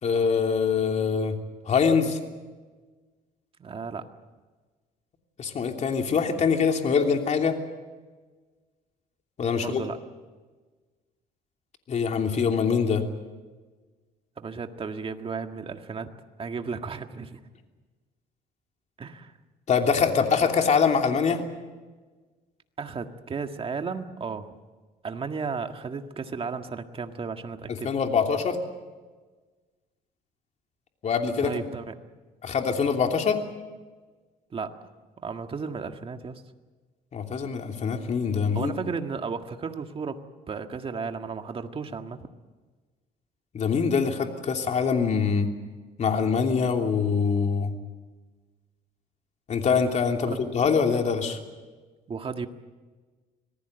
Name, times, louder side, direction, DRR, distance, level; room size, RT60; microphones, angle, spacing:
voice 1, 0.0-1.3 1.7-2.2 5.4-7.6 9.4-9.8 11.9-13.0 19.7-21.4 27.8-28.6 31.0-31.5 32.4-33.4 37.1-38.7 43.5-45.5 46.0-47.7 49.5-51.4, left 6 dB, 45° left, 4 dB, 3.0 m, -24 dB
voice 2, 3.6-4.0 9.5-10.0 14.4-16.1 16.4-17.5 19.0-19.3 22.8-24.6 25.0-27.9 31.4-31.9 34.5-34.7 35.2-36.4 38.5-40.2 40.5-42.3 50.3-50.4 52.1-52.5, right 5 dB, 35° right, 6 dB, 1.7 m, -34 dB
25.5 x 19.0 x 8.0 m, 1.3 s
cardioid pair, 110°, 17 cm